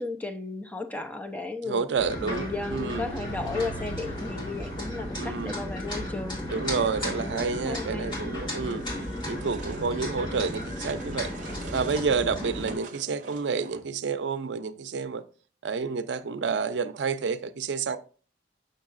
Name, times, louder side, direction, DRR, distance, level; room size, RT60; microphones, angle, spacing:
voice 1, 0.0-1.9 2.2-6.4 7.2-8.1 8.7-8.9, left 3 dB, 10° left, 0.5 m, -35 dB
voice 2, 1.7-3.1 5.2-5.6 6.5-8.9 9.3-11.3 11.7-15.2 15.6-18.0, right 5 dB, 75° right, 0.5 m, -29 dB
sound 1, 2.0-12.8, left 1 dB, 25° left, 2.2 m, -34 dB
sound 2, 2.2-6.0, right 2 dB, 70° left, 1.4 m, -42 dB
sound 3, 8.7-14.0, right 4 dB, 45° right, 0.7 m, -47 dB
6.6 x 6.2 x 2.5 m
head